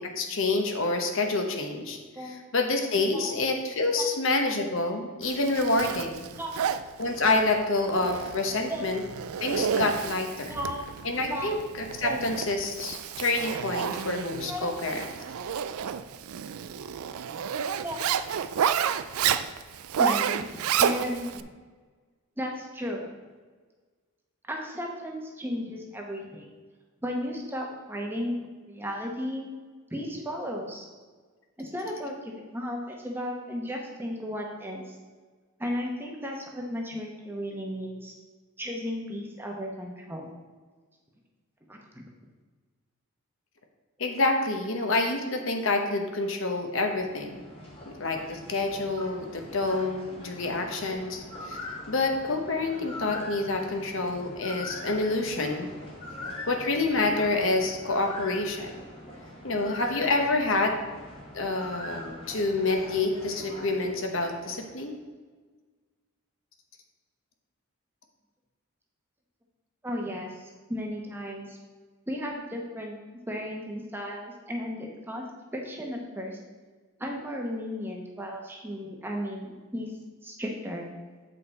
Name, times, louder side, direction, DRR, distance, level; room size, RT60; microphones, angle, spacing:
voice 1, 0.0-6.3 7.0-9.0 9.4-10.6 11.0-11.6 12.0-15.1 44.0-47.4 47.9-51.6 51.9-55.7 56.5-58.8 59.4-60.7 61.3-65.0, left 2 dB, 60° left, 3 dB, 0.9 m, -27 dB
voice 2, 3.1-3.4 4.0-4.1 6.4-6.6 7.4-7.5 7.9-8.1 8.7-8.9 9.4-9.5 10.5-10.8 11.3-11.6 12.0-12.2 14.4-14.8 17.8-18.0 20.0-21.4 22.4-23.1 24.5-26.6 27.0-28.4 28.7-29.5 29.9-30.9 31.6-35.0 35.6-38.1 38.6-40.3 41.7-42.1 69.8-71.6 72.1-73.0 73.3-75.2 75.5-76.4 77.0-79.9 80.2-80.9, equal, 10° right, 0 dB, 0.9 m, -34 dB
Zipper (clothing), 5.2-21.4, right 8 dB, 75° right, 0.4 m, -31 dB
sound 1, 46.6-64.9, left 1 dB, 25° left, 1.3 m, -42 dB
8.3 x 5.6 x 4.2 m, 1.4 s
head